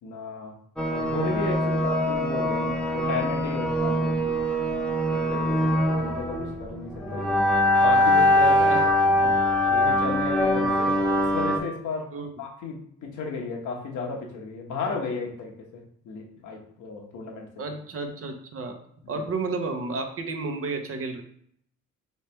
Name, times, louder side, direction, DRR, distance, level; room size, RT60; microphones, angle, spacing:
voice 1, 0.0-0.5 0.9-4.4 5.1-7.3 7.8-8.8 9.7-12.1 12.4-17.6 19.0-19.2, left 4 dB, 80° left, 0 dB, 1.1 m, -34 dB
sound 1, 0.8-11.6, left 1 dB, 5° left, 0.7 m, -23 dB
voice 2, 17.6-18.8 19.1-21.2, right 3 dB, 50° right, 5 dB, 0.8 m, -32 dB
3.2 x 3.2 x 4.3 m, 0.67 s
cardioid pair, 90°, 30 cm